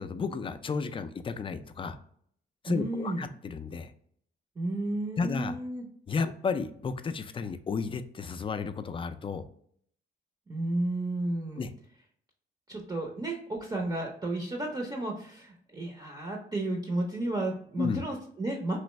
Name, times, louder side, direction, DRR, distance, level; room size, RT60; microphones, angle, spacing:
voice 1, 0.0-2.0 2.6-3.9 5.2-5.6 6.1-9.4 11.6-11.7 17.8-18.0, left 5 dB, 25° left, 10 dB, 0.3 m, -33 dB
voice 2, 2.7-3.3 4.6-5.8 10.5-11.7 12.7-18.8, right 2 dB, 20° right, 0 dB, 0.6 m, -32 dB
3.1 x 2.5 x 3.1 m, 0.64 s
cardioid pair, 90°, 20 cm